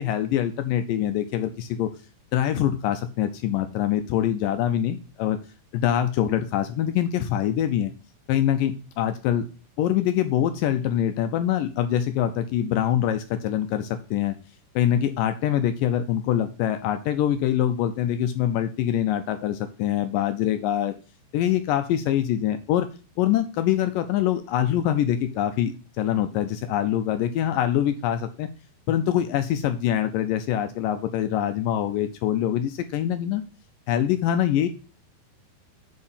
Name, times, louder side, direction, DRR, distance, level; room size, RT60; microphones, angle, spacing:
voice 1, 0.0-1.9 2.3-5.4 5.7-7.9 8.3-9.5 9.8-14.3 14.8-20.9 21.3-22.9 23.2-28.5 28.9-33.4 33.9-34.7, left 11 dB, 80° left, 8 dB, 2.0 m, -24 dB
8.4 x 4.4 x 5.6 m, 0.35 s
omnidirectional pair, 4.5 m